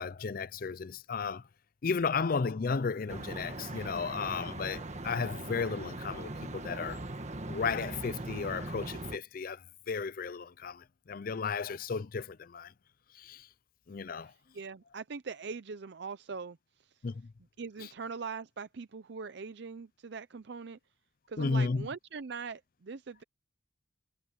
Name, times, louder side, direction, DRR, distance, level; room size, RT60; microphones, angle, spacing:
voice 1, 0.0-1.4 1.8-7.0 7.5-9.6 9.9-12.7 13.2-13.5 13.9-14.3 17.0-17.3 21.4-21.9, left 5 dB, 45° left, 0.5 m, -34 dB
sound 1, 3.1-9.2, right 2 dB, 35° right, 1.5 m, -40 dB
voice 2, 14.2-16.9 17.6-20.8 21.3-23.2, right 5 dB, 60° right, 0.5 m, -42 dB
head